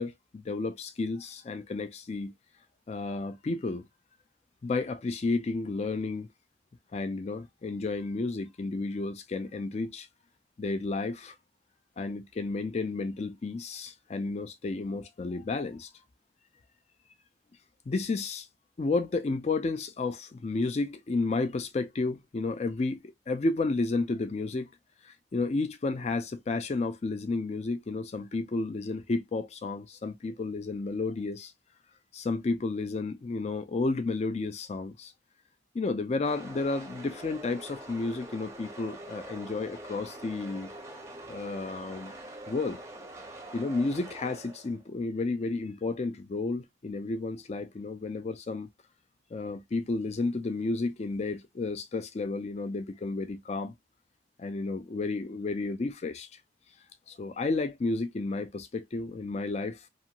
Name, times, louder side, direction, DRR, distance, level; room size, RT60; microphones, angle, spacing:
voice 1, 0.0-2.3 2.9-3.9 4.6-6.3 6.9-10.1 10.6-11.4 12.0-15.9 17.9-18.5 18.8-24.7 25.0-31.5 32.1-35.1 35.7-40.7 41.3-42.1 42.5-42.8 43.5-48.7 49.3-53.7 54.4-56.3 57.1-59.9, left 3 dB, 35° left, 0.4 m, -32 dB
sound 1, 36.2-44.9, right 1 dB, 15° right, 0.6 m, -45 dB
2.5 x 2.4 x 2.8 m
head